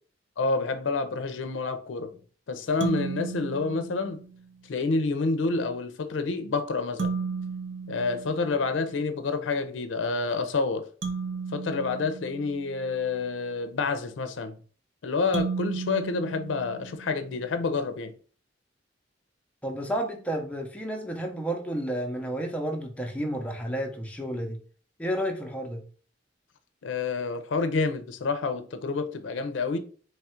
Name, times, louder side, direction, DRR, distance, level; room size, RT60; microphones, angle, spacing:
voice 1, 0.4-2.2 2.5-4.2 4.7-7.2 7.9-10.9 11.5-14.5 15.0-18.1 26.8-29.8, left 4 dB, 85° left, 0.5 m, -28 dB
sound 1, 2.8-4.5 7.0-9.0 11.0-13.1 15.3-17.4, right 5 dB, 75° right, 0.7 m, -34 dB
voice 2, 19.6-24.6 25.0-25.8, equal, 5° left, 0.6 m, -31 dB
3.1 x 2.4 x 4.3 m
head